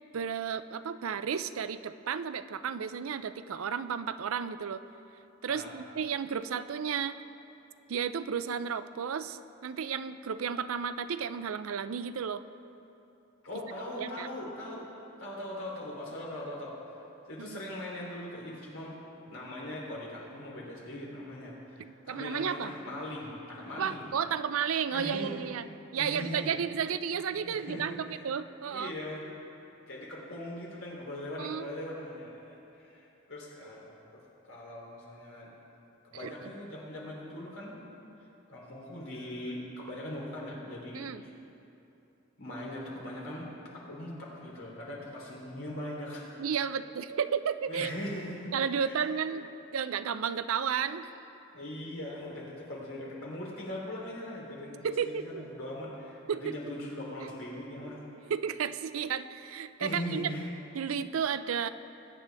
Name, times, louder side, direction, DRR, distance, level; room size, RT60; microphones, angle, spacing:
voice 1, 0.1-4.8 5.4-7.2 7.9-12.4 14.0-14.3 17.4-17.6 22.1-22.7 23.8-25.6 25.9-28.9 31.4-31.7 36.2-36.5 40.9-41.2 46.4-47.9 48.5-51.1 54.8-55.4 56.3-56.6 58.3-60.3 60.7-61.7, right 7 dB, 85° right, 12 dB, 0.5 m, -33 dB
voice 2, 5.5-5.8 13.4-14.8 15.2-17.0 17.3-19.0 19.3-24.0 24.9-25.3 26.0-26.5 27.4-28.2 28.7-29.2 29.6-35.5 36.0-37.8 38.5-41.3 42.4-43.5 43.9-46.3 47.7-48.5 48.8-49.1 51.5-58.0 59.8-60.5, left 1 dB, 80° left, -4 dB, 3.2 m, -40 dB
20.5 x 9.6 x 3.4 m, 2.9 s
head